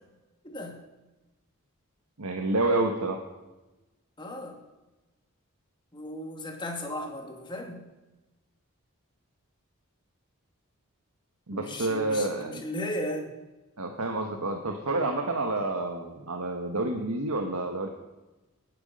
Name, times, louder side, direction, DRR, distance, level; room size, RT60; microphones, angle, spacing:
voice 1, 0.4-0.8 4.2-4.6 5.9-7.9 11.5-13.3, left 1 dB, 20° left, 1 dB, 2.3 m, -35 dB
voice 2, 2.2-3.2 11.5-12.6 13.8-17.9, right 2 dB, 85° right, 3 dB, 1.4 m, -29 dB
19.0 x 9.4 x 5.4 m, 1.1 s
head